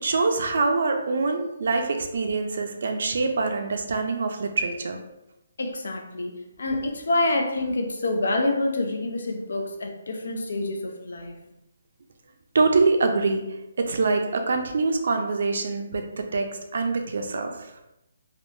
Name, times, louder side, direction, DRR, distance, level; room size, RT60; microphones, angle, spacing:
voice 1, 0.0-5.0 12.5-17.7, right 3 dB, 65° right, 5 dB, 0.4 m, -25 dB
voice 2, 5.6-11.3, left 2 dB, 80° left, 4 dB, 0.5 m, -27 dB
3.5 x 2.2 x 2.6 m, 0.90 s
hypercardioid pair, 165°, 0 cm